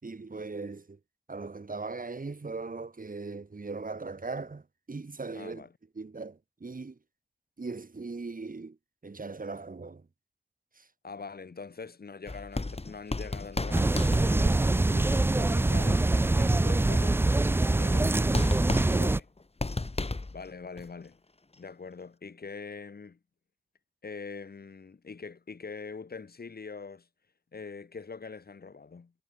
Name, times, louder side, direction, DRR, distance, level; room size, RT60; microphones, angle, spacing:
voice 1, 0.0-1.0 1.3-4.6 4.9-5.6 6.0-7.0 7.6-8.8 9.0-10.0 10.8-10.9 18.9-19.2, right 3 dB, 65° right, 6.4 m, -39 dB
voice 2, 5.3-5.7 11.0-16.1 16.4-17.4 17.8-18.6 19.0-19.2 20.3-21.2 21.6-23.2 24.0-27.1 27.5-29.1, left 4 dB, 85° left, 5.7 m, -43 dB
Punching Bag Sound Effects, 12.3-14.8 18.1-18.2 18.3-20.5 20.8-20.9, left 3 dB, 40° left, 2.4 m, -34 dB
sound 1, 13.7-19.2, right 2 dB, 15° right, 0.3 m, -24 dB
wide cardioid pair, 55°, 16 cm